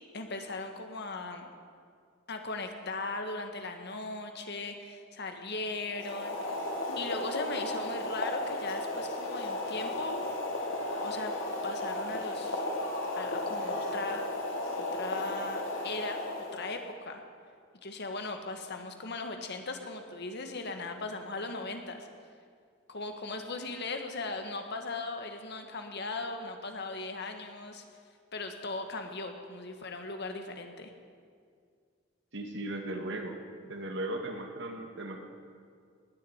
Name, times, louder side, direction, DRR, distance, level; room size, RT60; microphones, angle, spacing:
voice 1, 0.1-1.5 2.3-6.6 7.0-10.2 11.0-11.3 11.6-12.7 13.2-14.2 14.8-16.2 16.5-17.2 17.8-22.1 22.9-27.8 28.3-30.9, left 3 dB, 60° left, 5 dB, 1.7 m, -38 dB
Boiling, 5.9-16.9, left 1 dB, 75° left, 2.6 m, -34 dB
voice 2, 32.3-33.4 33.7-35.2, right 1 dB, 65° right, 4 dB, 2.0 m, -37 dB
19.5 x 7.7 x 9.6 m, 2.2 s
head